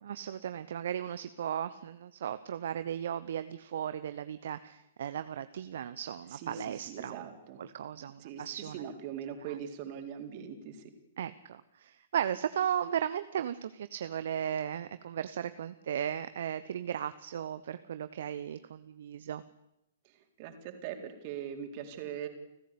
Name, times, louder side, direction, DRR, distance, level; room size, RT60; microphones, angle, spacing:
voice 1, 0.0-7.3 7.6-8.8 11.2-19.4, right 9 dB, 55° right, 12 dB, 1.0 m, -36 dB
voice 2, 6.3-7.6 8.0-10.8 20.4-22.3, right 8 dB, 40° right, 5 dB, 4.0 m, -41 dB
30.0 x 14.5 x 8.6 m, 0.87 s
figure-of-eight pair, 115°, 0 cm